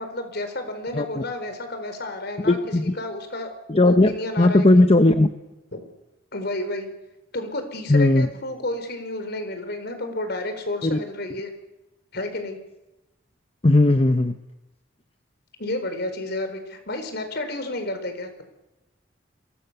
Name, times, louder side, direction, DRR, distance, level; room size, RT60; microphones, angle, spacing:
voice 1, 0.0-3.5 3.9-4.8 5.7-5.8 6.3-6.9 7.3-11.5 12.1-12.6 15.6-18.3, left 2 dB, 60° left, 8 dB, 4.6 m, -31 dB
voice 2, 2.5-2.9 3.7-4.1 4.4-5.3 7.9-8.3 10.8-11.0 13.6-14.4, left 2 dB, 30° left, 8 dB, 0.9 m, -17 dB
28.5 x 23.0 x 6.9 m, 0.99 s
head